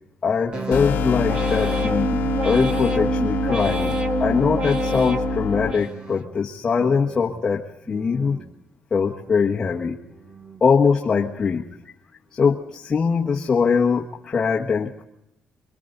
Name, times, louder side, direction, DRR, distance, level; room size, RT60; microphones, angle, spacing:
voice 1, 0.2-2.1 2.4-3.9 4.2-8.4 8.9-10.0 10.6-11.6 12.4-15.0, left 5 dB, 30° left, -2 dB, 1.5 m, -22 dB
sound 1, 0.5-6.4 6.8-7.4 7.9-8.5 9.0-9.6 10.1-10.7 11.2-11.7, right 3 dB, 30° right, 1.5 m, -28 dB
sound 2, 0.7-5.7, left 9 dB, 70° left, 1.1 m, -27 dB
27.5 x 23.5 x 4.0 m, 0.84 s
cardioid pair, 165°, 3 cm